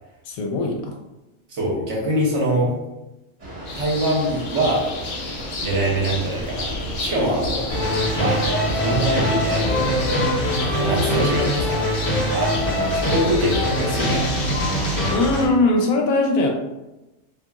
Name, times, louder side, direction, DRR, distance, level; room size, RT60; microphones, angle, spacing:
voice 1, 0.3-1.0 2.6-2.9 15.1-16.5, left 2 dB, 85° left, 2 dB, 1.0 m, -20 dB
voice 2, 1.5-2.7 3.7-4.9 5.6-7.7 8.1-10.0 10.7-11.8 12.3-14.3, right 1 dB, 60° right, -3 dB, 1.0 m, -24 dB
sound 1, 3.4-11.4, equal, 40° right, 1.1 m, -34 dB
sound 2, 3.7-14.5, left 3 dB, 60° left, 0.8 m, -34 dB
sound 3, 7.7-15.4, equal, 30° left, 0.8 m, -22 dB
2.8 x 2.6 x 2.3 m, 1.0 s
omnidirectional pair, 1.4 m